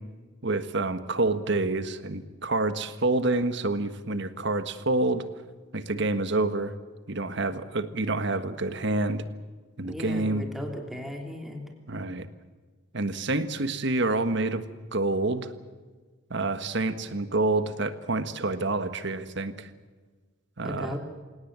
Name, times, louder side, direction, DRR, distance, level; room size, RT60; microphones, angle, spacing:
voice 1, 0.4-5.2 5.7-6.7 7.1-9.2 9.8-10.4 11.9-12.3 12.9-14.6 14.9-15.5 16.3-19.7 20.6-21.0, right 2 dB, 60° right, 11 dB, 1.5 m, -27 dB
voice 2, 9.8-11.6 20.6-21.0, left 1 dB, ahead, 2 dB, 3.3 m, -36 dB
27.5 x 18.0 x 7.5 m, 1.4 s
head